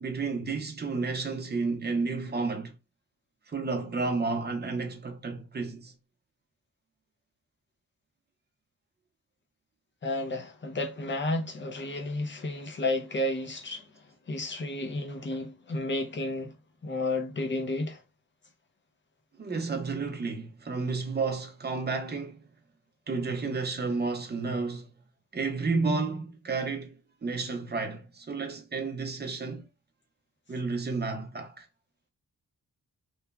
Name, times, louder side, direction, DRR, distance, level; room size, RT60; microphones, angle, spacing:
voice 1, 0.0-2.7 3.5-5.9 19.4-22.4 23.1-24.9 25.3-26.9 27.2-29.7 30.5-31.7, right 4 dB, 30° right, 0.6 m, -31 dB
voice 2, 10.0-16.5 16.8-18.0, left 2 dB, 35° left, 0.6 m, -32 dB
3.0 x 2.1 x 2.3 m
wide cardioid pair, 135°, 35 cm